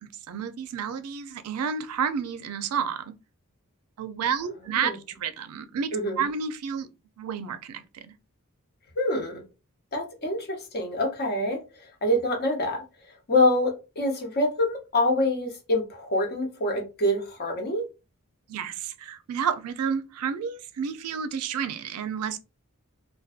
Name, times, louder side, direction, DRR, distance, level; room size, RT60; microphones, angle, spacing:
voice 1, 0.0-3.0 4.0-6.9 7.2-8.1 18.5-22.4, right 7 dB, 85° right, 0.4 m, -30 dB
voice 2, 5.9-6.2 9.0-9.4 9.9-11.6 12.0-12.8 13.3-17.9, left 1 dB, 45° left, 0.7 m, -25 dB
2.5 x 2.2 x 2.4 m
head